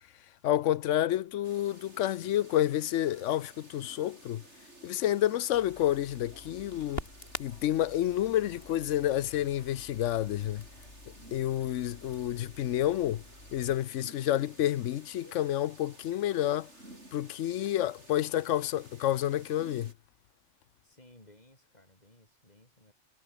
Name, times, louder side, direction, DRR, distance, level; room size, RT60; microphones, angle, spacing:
voice 1, 0.4-4.4 4.8-7.0 7.4-10.6 11.3-13.2 13.5-16.7 17.1-19.9, left 12 dB, 90° left, 1.0 m, -29 dB
sound 1, 1.4-19.9, right 1 dB, 70° right, 7.2 m, -55 dB
Crackle, 5.5-13.8, left 2 dB, 55° left, 4.0 m, -47 dB
voice 2, 20.8-22.9, left 1 dB, 35° left, 5.8 m, -59 dB
omnidirectional pair, 1.2 m